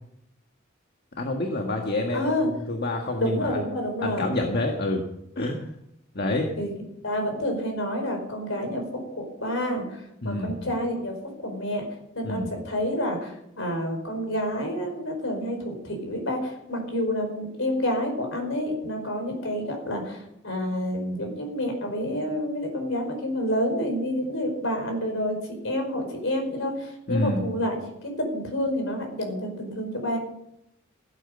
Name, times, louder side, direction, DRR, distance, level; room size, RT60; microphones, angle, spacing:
voice 1, 1.2-3.7 4.0-5.0 5.3-5.7 6.1-6.5 10.2-10.6 12.2-12.5 27.1-27.5, left 2 dB, 55° left, 2 dB, 1.6 m, -28 dB
voice 2, 2.1-2.5 3.2-4.3 6.5-6.7 7.0-8.8 9.1-9.8 10.2-11.8 12.1-20.2 20.4-25.3 25.6-27.8 28.0-30.2, left 1 dB, 75° left, 4 dB, 5.0 m, -28 dB
16.0 x 9.0 x 6.8 m, 0.79 s
head